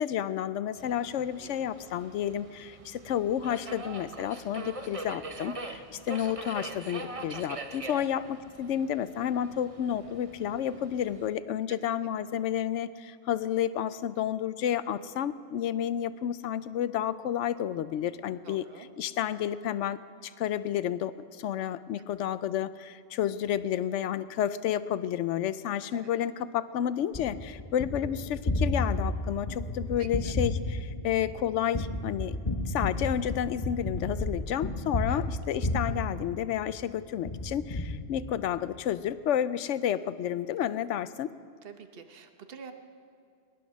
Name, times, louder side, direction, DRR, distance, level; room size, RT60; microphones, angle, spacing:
voice 1, 0.0-32.4 32.7-41.3, left 10 dB, 80° left, 15 dB, 0.9 m, -31 dB
Subway metro underground, 0.8-11.3, right 2 dB, 35° right, 0.7 m, -43 dB
voice 2, 18.4-18.9 25.9-26.1 30.0-30.1 35.1-35.2 41.6-42.7, right 6 dB, 55° right, 7 dB, 1.1 m, -46 dB
Gunshot gunfire, 27.1-36.8 37.2-38.7, left 2 dB, 30° left, 1.0 m, -32 dB
20.0 x 11.5 x 6.3 m, 2.3 s
omnidirectional pair, 1.2 m